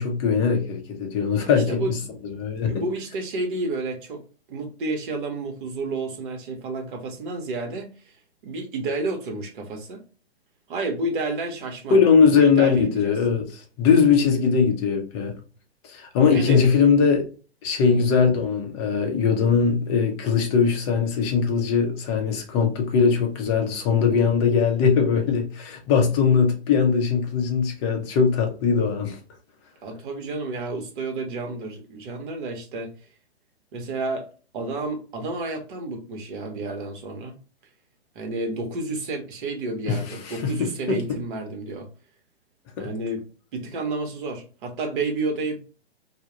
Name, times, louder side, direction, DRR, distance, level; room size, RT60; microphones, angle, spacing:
voice 1, 0.0-2.0 2.2-2.8 11.9-13.5 13.8-15.4 15.8-17.2 17.6-29.2 39.9-41.0 42.8-42.9, left 6 dB, 25° left, 0.5 m, -20 dB
voice 2, 1.4-1.9 2.6-4.2 4.5-7.9 8.4-10.0 10.7-12.0 12.3-13.2 16.3-16.7 17.8-18.0 29.8-32.9 33.7-34.3 34.5-37.3 38.1-41.9 42.8-43.2 43.5-45.6, right 3 dB, 50° right, 0.8 m, -30 dB
2.2 x 2.0 x 2.8 m
hypercardioid pair, 120°, 32 cm